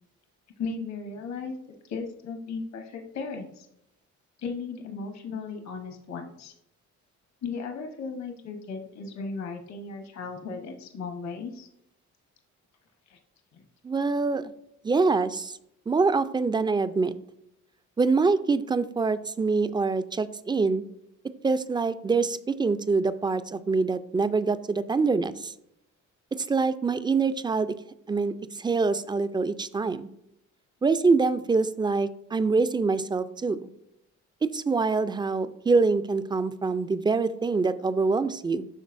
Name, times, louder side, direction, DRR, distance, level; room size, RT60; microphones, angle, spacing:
voice 1, 0.6-1.5 1.8-3.7 4.4-6.5 7.4-11.7 13.1-13.2 13.5-13.6, left 4 dB, 65° left, 4 dB, 1.0 m, -36 dB
voice 2, 13.8-14.4 14.8-15.6 15.9-17.2 18.0-20.8 21.4-25.5 26.3-27.7 28.1-30.1 30.8-33.7 34.5-38.7, right 4 dB, 15° right, 13 dB, 0.3 m, -25 dB
11.5 x 3.9 x 2.6 m, 0.80 s
cardioid pair, 90°, 30 cm